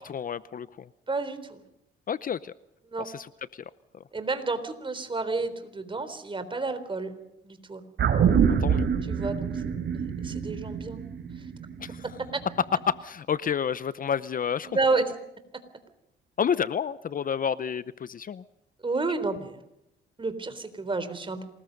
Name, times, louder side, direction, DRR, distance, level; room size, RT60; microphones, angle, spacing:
voice 1, 0.0-0.9 2.1-2.5 3.1-3.3 8.6-8.9 11.8-12.0 12.9-14.7 16.4-18.4, left 7 dB, 45° left, 16 dB, 0.7 m, -29 dB
voice 2, 1.1-1.6 2.9-3.1 4.1-7.1 7.4-7.8 9.1-11.0 14.6-15.1 18.8-19.6 20.2-21.4, right 3 dB, 25° right, 10 dB, 3.8 m, -30 dB
sound 1, 8.0-12.6 12.9-13.0, right 7 dB, 65° right, 3.5 m, -26 dB
27.0 x 20.5 x 5.3 m, 0.84 s
cardioid pair, 90°, 20 cm